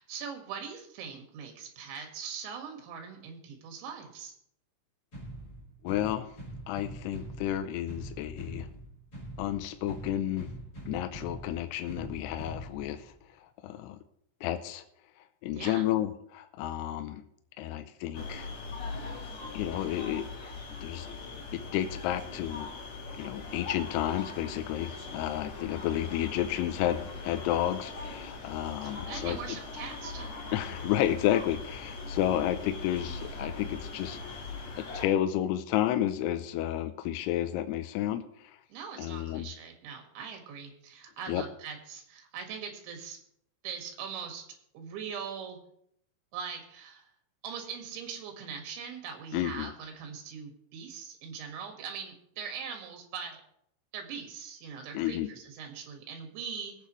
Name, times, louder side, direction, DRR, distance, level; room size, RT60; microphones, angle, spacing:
voice 1, 0.0-4.3 15.5-15.9 28.8-30.3 38.7-43.2 43.6-44.4 44.7-45.6 46.3-47.1 47.4-53.4 53.9-56.7, right 6 dB, 80° right, 3 dB, 4.0 m, -41 dB
sound 1, 5.1-13.1, right 1 dB, 20° left, 5.0 m, -44 dB
voice 2, 5.8-6.3 6.7-8.7 9.4-10.5 10.9-13.1 13.6-14.0 14.4-14.8 15.4-17.2 17.6-18.5 19.5-20.3 20.8-21.1 21.5-22.7 23.1-29.4 30.5-34.2 34.7-38.6 39.0-39.5 41.3-41.4 49.3-49.7 54.9-55.3, left 12 dB, 85° left, 8 dB, 2.4 m, -31 dB
sound 2, 18.1-35.1, left 3 dB, 50° left, 2.2 m, -41 dB
22.0 x 8.3 x 3.1 m, 0.72 s
omnidirectional pair, 5.3 m